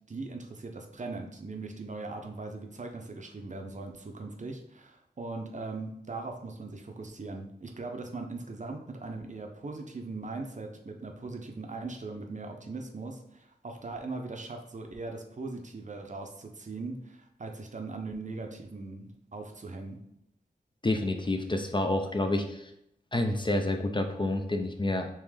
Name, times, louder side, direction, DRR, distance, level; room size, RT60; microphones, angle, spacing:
voice 1, 0.0-20.0, right 3 dB, 45° right, 3 dB, 0.6 m, -40 dB
voice 2, 20.8-22.7 23.1-25.1, left 2 dB, 30° left, 5 dB, 0.4 m, -29 dB
3.5 x 3.0 x 3.3 m, 0.75 s
wide cardioid pair, 50°, 17 cm